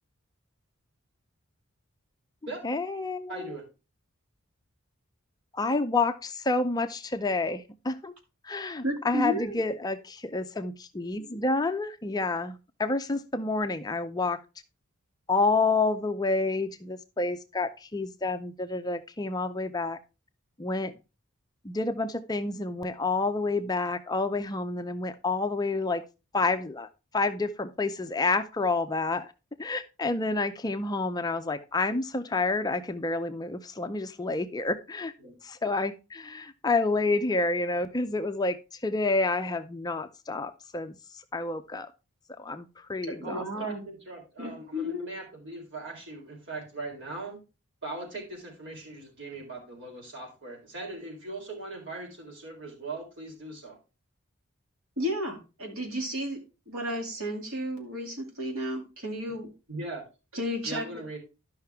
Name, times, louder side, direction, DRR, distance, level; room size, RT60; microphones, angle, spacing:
voice 1, 2.6-3.5 5.5-8.2 8.4-14.4 15.3-20.0 20.6-20.9 21.6-26.0 26.3-29.3 29.6-35.1 35.4-41.9 42.4-43.4, left 3 dB, 20° left, 9 dB, 0.4 m, -29 dB
voice 2, 3.3-3.6 35.2-35.3 43.1-47.4 47.8-53.8 59.7-60.0 60.6-61.2, right 2 dB, 55° right, 0 dB, 3.8 m, -39 dB
voice 3, 8.8-9.6 43.2-43.8 44.4-45.1 55.0-59.5 60.3-60.9, equal, 80° right, 2 dB, 2.4 m, -33 dB
12.0 x 5.7 x 3.5 m, 0.29 s
head